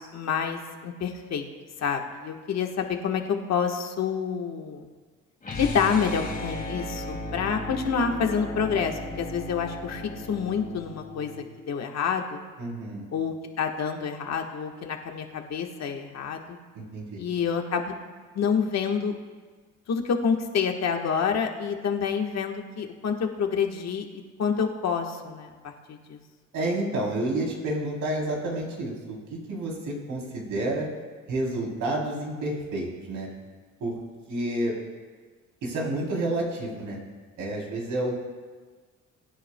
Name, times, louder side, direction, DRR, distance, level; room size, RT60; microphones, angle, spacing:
voice 1, 0.0-1.4 1.8-4.9 5.6-10.0 10.3-11.3 11.7-12.4 13.1-16.4 17.2-17.9 18.3-19.1 19.9-26.2, left 6 dB, 60° left, 3 dB, 1.3 m, -28 dB
sound 1, 5.4-11.5, left 1 dB, 30° left, 2.5 m, -36 dB
voice 2, 12.6-13.0 16.7-17.2 26.5-30.9 31.3-33.3 33.8-33.9 34.3-34.7 35.6-37.0 37.4-38.1, right 1 dB, 80° right, -2 dB, 3.3 m, -29 dB
22.5 x 9.9 x 2.2 m, 1.4 s
cardioid pair, 90°, 30 cm